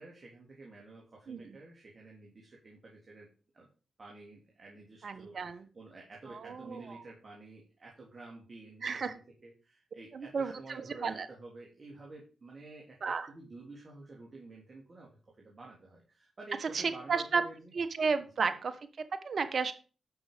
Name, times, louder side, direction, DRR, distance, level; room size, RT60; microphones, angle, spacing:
voice 1, 0.0-3.3 3.5-3.7 4.0-17.7 18.5-18.6, right 2 dB, 45° right, -2 dB, 3.6 m, -51 dB
voice 2, 5.0-5.6 6.3-7.0 8.8-9.2 10.1-11.3 13.0-13.3 16.6-17.4 17.7-19.7, right 5 dB, 60° right, 11 dB, 1.2 m, -33 dB
11.5 x 6.3 x 5.2 m, 0.36 s
supercardioid pair, 45°, 0 cm